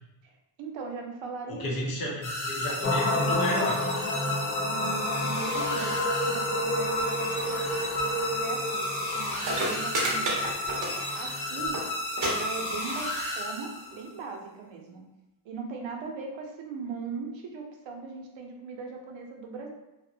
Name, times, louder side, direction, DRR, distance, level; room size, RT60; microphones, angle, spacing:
voice 1, 0.2-2.0 4.6-10.5 11.1-11.8 12.2-15.0 15.4-19.7, right 5 dB, 80° right, 2 dB, 0.6 m, -39 dB
voice 2, 1.5-3.8, left 1 dB, 50° left, -2 dB, 0.7 m, -31 dB
sound 1, 2.2-14.1, left 1 dB, 85° left, 1.1 m, -32 dB
sound 2, 2.8-11.7, left 1 dB, 25° left, 0.4 m, -30 dB
sound 3, 9.1-9.2 9.4-11.3 11.6-11.8 12.2-12.3 12.6-13.1 13.9-14.0, right 1 dB, 40° right, 0.6 m, -30 dB
2.7 x 2.1 x 2.6 m, 0.95 s
wide cardioid pair, 145°, 45 cm